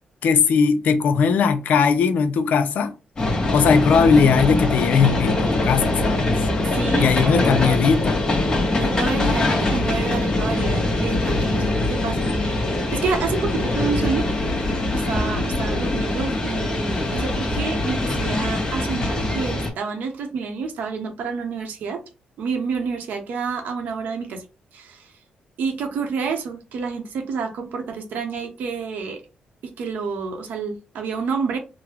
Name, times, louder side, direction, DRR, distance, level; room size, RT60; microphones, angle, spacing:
voice 1, 0.2-2.9 3.5-6.3 7.0-8.2, left 6 dB, 75° left, 0.4 m, -19 dB
sound 1, 3.2-19.7, left 2 dB, 30° left, 0.9 m, -23 dB
voice 2, 6.7-7.8 8.8-12.6 12.9-14.3 14.9-22.0 22.4-24.4 24.7-25.1 25.6-29.2 29.6-31.6, right 5 dB, 85° right, 0.7 m, -29 dB
3.7 x 2.0 x 2.9 m
cardioid pair, 125°, 3 cm